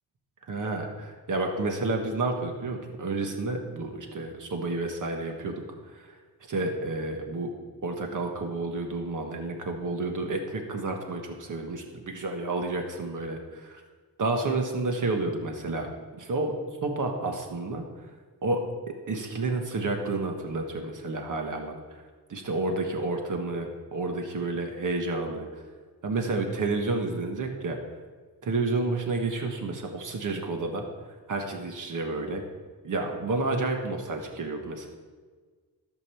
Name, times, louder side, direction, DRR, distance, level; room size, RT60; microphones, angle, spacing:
voice 1, 0.5-5.5 5.9-6.1 6.5-7.5 7.8-13.8 14.2-15.9 16.1-16.5 16.8-17.8 18.4-18.6 19.1-21.8 22.3-25.5 26.0-27.8 28.4-30.8 31.3-32.4 32.8-34.9, right 3 dB, 50° right, 3 dB, 1.3 m, -30 dB
14.5 x 5.3 x 6.8 m, 1.5 s
wide cardioid pair, 175°, 40 cm